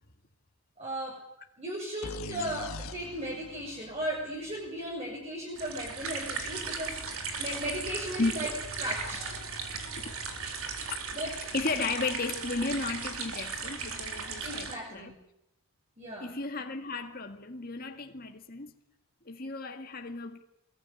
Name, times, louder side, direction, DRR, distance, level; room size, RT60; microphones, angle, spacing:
voice 1, 0.8-1.2 1.6-7.0 7.4-8.5 8.8-9.2 11.1-11.3 14.4-15.2 16.0-16.3, equal, 30° right, 6.7 m, -36 dB
sound 1, 2.0-5.7, left 3 dB, 75° left, 1.7 m, -44 dB
sound 2, 5.6-14.7, right 5 dB, 75° right, 4.1 m, -37 dB
voice 2, 9.7-10.1 11.5-15.1 16.2-18.7 19.3-20.4, left 3 dB, 40° left, 1.9 m, -34 dB
24.5 x 21.0 x 9.7 m
head